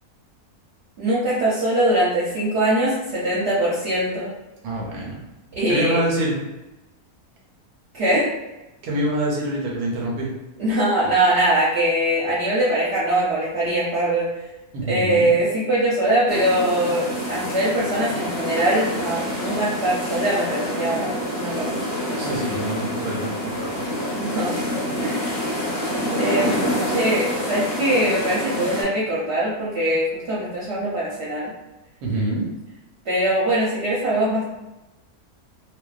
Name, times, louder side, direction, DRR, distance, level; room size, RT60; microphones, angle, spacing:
voice 1, 1.0-4.3 5.6-6.0 7.9-8.3 10.6-14.3 14.9-21.7 24.2-24.5 25.0-25.3 26.1-31.5 33.1-34.5, right 1 dB, 55° right, -8 dB, 0.8 m, -22 dB
voice 2, 4.6-5.2 5.7-6.4 8.8-10.3 14.7-15.3 22.2-23.8 32.0-32.5, right 1 dB, 90° right, -3 dB, 1.2 m, -26 dB
sound 1, 16.3-28.8, equal, 40° left, 0.8 m, -27 dB
2.5 x 2.2 x 2.3 m, 1.0 s
omnidirectional pair, 1.6 m